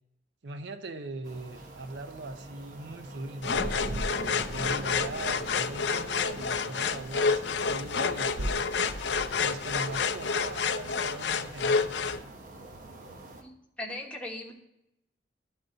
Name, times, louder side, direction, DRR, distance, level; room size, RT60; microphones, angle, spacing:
voice 1, 0.4-8.6 9.4-11.9, right 2 dB, 80° right, 0.6 m, -40 dB
sound 1, 1.2-13.4, right 2 dB, 45° right, 0.9 m, -47 dB
sound 2, 3.4-12.2, left 5 dB, 75° left, 0.5 m, -29 dB
sound 3, 3.4-11.4, right 1 dB, 30° right, 0.4 m, -40 dB
voice 2, 13.8-14.5, left 1 dB, 5° left, 1.1 m, -38 dB
11.5 x 4.0 x 3.8 m
head